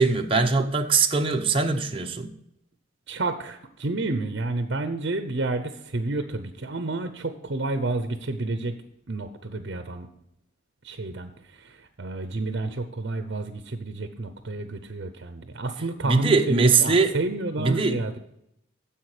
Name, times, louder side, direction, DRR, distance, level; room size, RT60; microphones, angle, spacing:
voice 1, 0.0-2.3 16.1-17.1 17.6-18.0, right 4 dB, 30° right, 0.8 m, -21 dB
voice 2, 3.1-8.7 9.1-10.1 10.8-18.2, right 2 dB, 60° right, 0.7 m, -30 dB
10.5 x 7.3 x 4.9 m
head